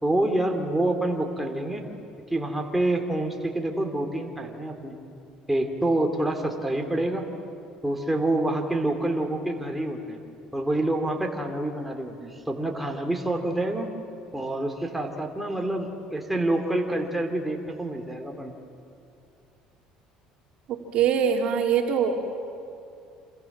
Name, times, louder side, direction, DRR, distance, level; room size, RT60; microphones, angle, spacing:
voice 1, 0.0-1.8 2.3-5.0 5.5-7.3 7.8-10.2 10.5-13.9 14.3-18.5, right 1 dB, 5° right, 2 dB, 3.3 m, -27 dB
voice 2, 20.7-22.2, right 7 dB, 55° right, 2 dB, 3.2 m, -23 dB
28.0 x 27.0 x 7.5 m, 2.6 s
supercardioid pair, 100°, 2 cm